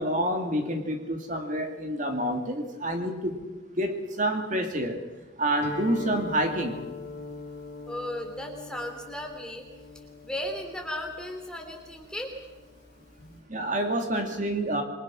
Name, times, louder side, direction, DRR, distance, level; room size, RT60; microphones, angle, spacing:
voice 1, 0.0-3.4 3.8-5.0 5.4-6.9 13.5-14.8, right 1 dB, 40° right, 4 dB, 2.6 m, -28 dB
Guitar, 5.6-13.4, left 3 dB, 50° left, 5.2 m, -42 dB
voice 2, 7.9-9.6 10.2-12.3 13.2-13.4, left 1 dB, 5° left, 2 dB, 3.3 m, -36 dB
27.5 x 23.0 x 6.3 m, 1.1 s
head